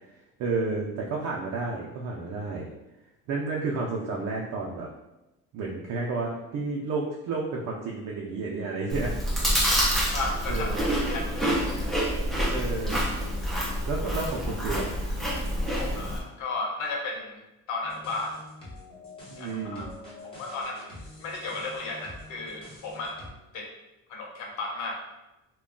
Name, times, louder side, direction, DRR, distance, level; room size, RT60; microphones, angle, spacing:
voice 1, 0.4-2.7 3.3-4.9 5.5-9.2 10.5-10.9 12.5-13.1 13.9-14.9 19.3-19.9, right 3 dB, 60° right, -2 dB, 0.5 m, -31 dB
Chewing mastication, 8.9-16.2, equal, ahead, 0.5 m, -27 dB
voice 2, 10.1-10.8 11.1-11.2 15.6-17.4 17.7-18.3 19.4-19.8 20.4-20.9 21.2-23.2 23.5-23.7 24.1-25.0, left 3 dB, 75° left, -1 dB, 0.7 m, -34 dB
sound 1, 17.8-23.3, left 2 dB, 15° left, 0.9 m, -46 dB
2.2 x 2.2 x 3.7 m, 0.95 s
cardioid pair, 135°, 31 cm